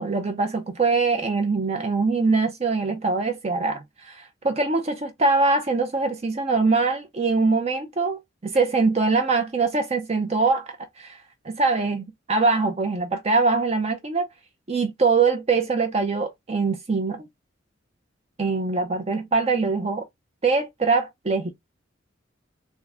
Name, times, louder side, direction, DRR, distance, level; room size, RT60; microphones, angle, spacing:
voice 1, 0.0-14.3 14.7-17.3 18.4-20.1 20.4-21.5, right 4 dB, 35° right, 0.6 m, -23 dB
3.6 x 2.6 x 3.4 m
head